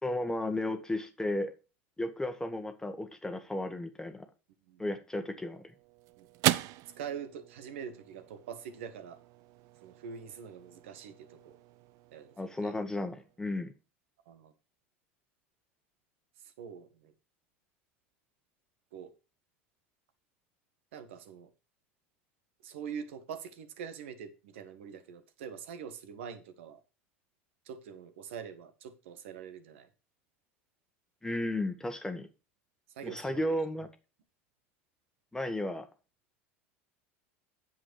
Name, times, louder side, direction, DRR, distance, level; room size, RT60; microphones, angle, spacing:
voice 1, 0.0-1.5 2.0-4.3 4.8-5.6 12.4-13.7 31.2-32.3 33.0-33.9 35.3-35.9, left 1 dB, 10° left, 1.4 m, -34 dB
sound 1, 5.1-13.7, right 16 dB, 55° right, 0.6 m, -38 dB
voice 2, 7.0-9.2 9.8-11.6 12.1-12.7 14.3-14.5 16.4-17.1 18.9-19.1 20.9-21.5 22.6-26.8 27.6-29.9 32.9-33.6, right 7 dB, 75° right, 1.7 m, -44 dB
8.9 x 7.5 x 4.8 m
hypercardioid pair, 85°, 7 cm